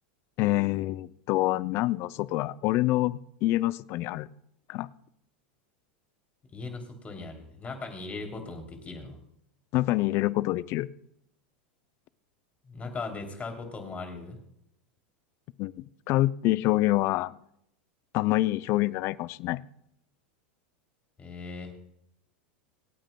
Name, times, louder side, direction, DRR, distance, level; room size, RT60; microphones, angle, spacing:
voice 1, 0.4-4.3 4.7-4.9 9.7-10.9 15.6-17.3 18.1-19.6, left 17 dB, 50° left, 0.5 m, -26 dB
voice 2, 6.5-9.2 12.6-14.4 21.2-21.7, left 3 dB, 25° left, 3.0 m, -38 dB
26.5 x 8.9 x 2.3 m
hypercardioid pair, 100°, 6 cm